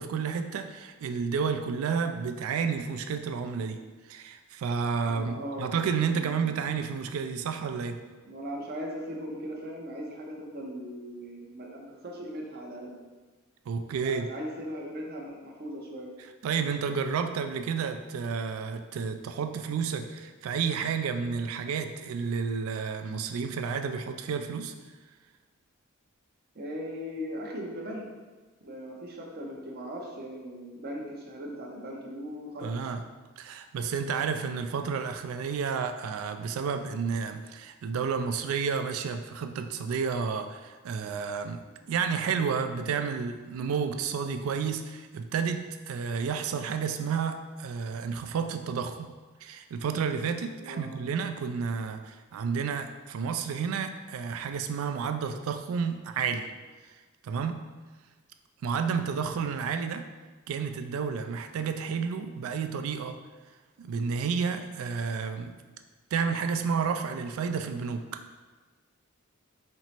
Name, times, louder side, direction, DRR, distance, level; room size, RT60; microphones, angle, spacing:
voice 1, 0.0-3.8 4.1-8.0 13.7-14.3 16.4-24.7 32.6-33.0 33.4-49.1 49.4-56.5 57.2-57.6 58.6-60.0 60.5-63.2 63.8-65.5 66.1-68.2, right 6 dB, 80° right, 7 dB, 0.3 m, -31 dB
voice 2, 5.1-5.7 6.1-6.4 8.2-13.0 14.0-16.1 26.5-28.1 28.6-32.7 50.5-50.9, equal, 50° right, -1 dB, 0.7 m, -39 dB
4.4 x 2.0 x 4.1 m, 1.3 s
head